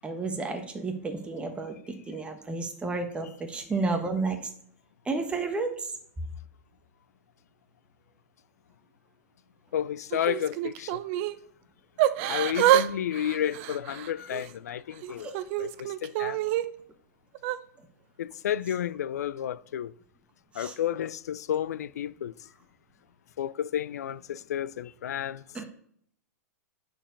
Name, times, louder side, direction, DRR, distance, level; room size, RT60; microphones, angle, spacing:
voice 1, 0.0-4.5 5.1-5.9 15.1-15.3 20.5-20.7 25.5-25.6, right 3 dB, 10° right, 1.3 m, -32 dB
voice 2, 9.7-10.9 12.3-15.3 15.6-16.4 18.2-19.9 20.6-22.3 23.4-25.4, left 10 dB, 75° left, 0.4 m, -31 dB
Yell / Crying sobbing, 10.1-11.4 12.0-12.9 13.1-14.5 15.0-16.6 17.3-17.6, right 13 dB, 50° right, 0.6 m, -27 dB
9.8 x 4.7 x 5.3 m
hypercardioid pair, 110°, 9 cm